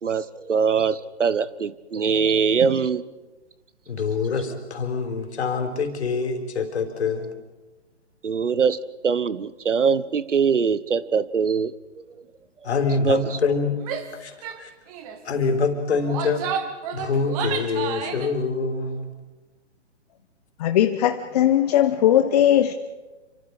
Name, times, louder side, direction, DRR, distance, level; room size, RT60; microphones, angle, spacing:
voice 1, 0.0-3.0 8.2-11.7 13.0-13.4, right 6 dB, 85° right, 1.3 m, -22 dB
voice 2, 3.9-7.3 12.6-13.8 14.2-14.7 15.2-16.4 16.9-19.1, left 4 dB, 65° left, 4.6 m, -25 dB
Female speech woman speaking / Yell, 13.8-14.1 14.4-14.6 14.9-15.2 15.9-18.3, right 8 dB, 30° right, 2.0 m, -31 dB
voice 3, 20.6-22.7, left 11 dB, 35° left, 1.0 m, -19 dB
28.5 x 25.0 x 4.9 m
hypercardioid pair, 145°, 35 cm